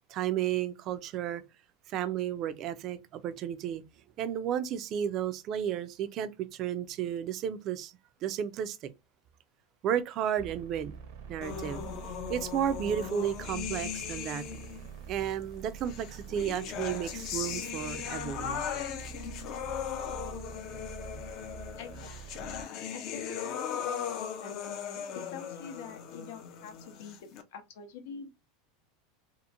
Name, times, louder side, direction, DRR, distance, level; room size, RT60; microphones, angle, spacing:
voice 1, 0.1-1.4 1.9-3.8 4.2-7.9 8.2-8.9 9.8-11.0 11.3-11.8 12.3-14.4 15.1-18.7, right 9 dB, 35° right, 0.4 m, -33 dB
sound 1, 10.3-22.6, right 6 dB, 60° right, 0.7 m, -45 dB
sound 2, 11.4-14.9 15.9-27.4, left 8 dB, 40° left, 0.5 m, -38 dB
voice 2, 21.8-24.7 25.1-28.3, left 6 dB, 75° left, 0.7 m, -46 dB
2.9 x 2.5 x 2.4 m
supercardioid pair, 160°, 0 cm